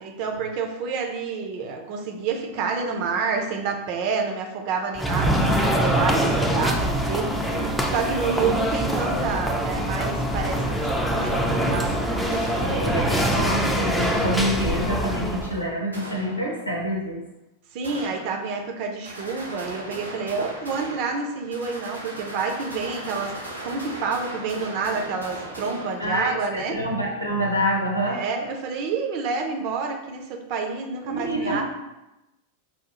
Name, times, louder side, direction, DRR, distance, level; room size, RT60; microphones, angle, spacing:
voice 1, 0.0-13.5 17.7-23.3 23.6-26.8 28.1-31.6, right 5 dB, 45° right, 3 dB, 0.5 m, -29 dB
sound 1, 5.0-15.6, equal, 5° left, 0.4 m, -24 dB
sound 2, 12.3-13.3 14.0-15.0 15.9-16.9 17.8-18.8 19.0-26.6, right 1 dB, 85° right, 0.7 m, -38 dB
voice 2, 12.6-17.2 26.0-28.2 31.1-31.6, equal, 90° left, -1 dB, 0.8 m, -27 dB
5.5 x 2.3 x 2.9 m, 0.97 s
figure-of-eight pair, 90°, 0 cm